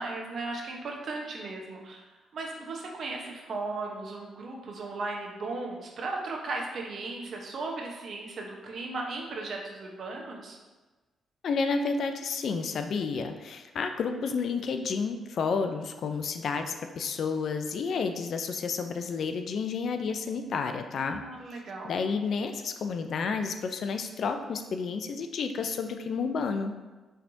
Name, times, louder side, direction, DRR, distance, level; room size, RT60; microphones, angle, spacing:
voice 1, 0.0-2.0 2.3-10.6 21.0-22.0, right 3 dB, 60° right, 0 dB, 0.9 m, -36 dB
voice 2, 11.4-21.2 21.8-26.7, left 5 dB, 65° left, 7 dB, 0.4 m, -31 dB
5.6 x 3.4 x 2.7 m, 1.2 s
cardioid pair, 70°, 0 cm